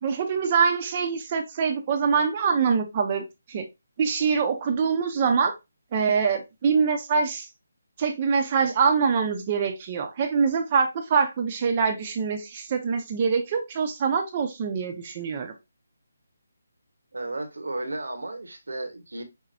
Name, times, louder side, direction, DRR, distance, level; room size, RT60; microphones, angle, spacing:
voice 1, 0.0-3.6 4.0-5.5 5.9-7.5 8.0-15.6, right 5 dB, 35° right, 0.7 m, -24 dB
voice 2, 17.1-19.2, right 2 dB, 80° right, 1.0 m, -33 dB
5.9 x 2.2 x 2.7 m
figure-of-eight pair, 150°, 0 cm